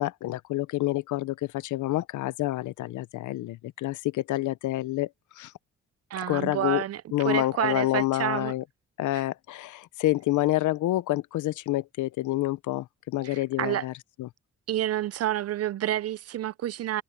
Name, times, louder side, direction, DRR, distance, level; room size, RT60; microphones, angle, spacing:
voice 1, 0.0-5.1 5.3-5.5 6.2-6.8 7.1-8.6 9.0-13.9 14.2-14.3, left 16 dB, 80° left, 0.8 m, -28 dB
voice 2, 6.1-8.5 9.1-9.2 13.2-13.9 14.7-17.0, right 12 dB, 55° right, 0.5 m, -29 dB
cardioid pair, 90°, 30 cm